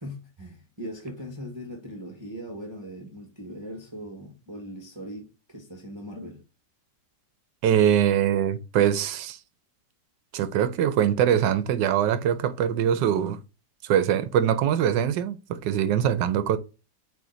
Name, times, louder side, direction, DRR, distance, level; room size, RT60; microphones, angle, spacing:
voice 1, 0.0-6.4, equal, 15° right, 1.2 m, -39 dB
voice 2, 7.6-9.4 10.3-13.4 13.8-16.6, right 9 dB, 80° right, 1.3 m, -23 dB
8.6 x 3.3 x 3.9 m
omnidirectional pair, 1.9 m